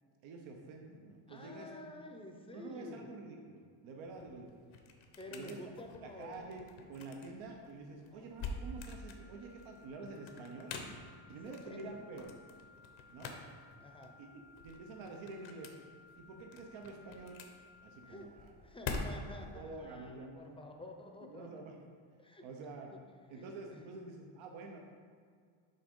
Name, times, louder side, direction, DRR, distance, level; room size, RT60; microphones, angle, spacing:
voice 1, 0.2-1.7 2.5-4.6 5.3-5.6 6.0-10.8 11.3-12.4 13.1-13.4 14.2-14.3 14.6-15.7 16.2-17.4 17.8-18.5 19.1-19.2 19.5-20.6 21.2-21.8 22.4-22.9 23.3-24.8, right 3 dB, 75° right, 2 dB, 0.9 m, -48 dB
voice 2, 1.3-3.1 5.2-6.5 8.1-8.3 11.3-12.1 13.8-14.2 18.0-18.3 18.6-21.5 22.2-22.5 22.9-23.0 23.3-23.9, left 2 dB, 10° left, 3 dB, 0.5 m, -50 dB
sound 1, 4.0-19.5, left 3 dB, 80° left, 0.8 m, -47 dB
sound 2, 8.3-18.2, left 4 dB, 35° right, 0.4 m, -61 dB
5.6 x 3.7 x 5.3 m, 2.1 s
cardioid pair, 115°, 47 cm